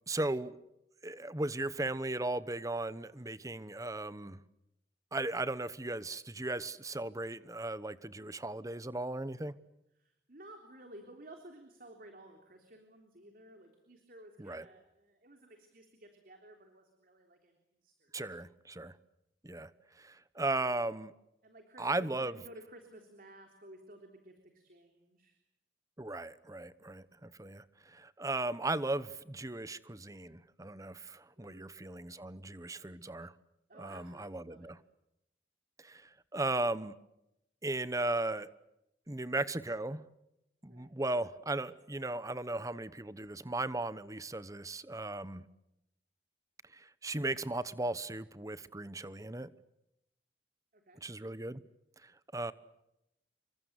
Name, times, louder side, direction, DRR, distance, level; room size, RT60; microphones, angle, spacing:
voice 1, 0.1-0.5 1.0-4.4 5.1-9.5 14.4-14.6 18.1-19.0 19.4-19.7 20.0-21.1 21.8-22.3 26.0-33.3 33.8-34.8 35.8-36.9 37.6-38.5 39.1-40.0 40.6-45.4 46.7-49.5 51.0-51.6 52.0-52.5, right 2 dB, 20° right, 1.0 m, -37 dB
voice 2, 10.0-18.1 21.4-25.4 31.4-31.7 33.7-34.7 40.7-40.9 50.7-51.0, right 1 dB, 50° right, 3.5 m, -55 dB
28.5 x 24.5 x 8.2 m
head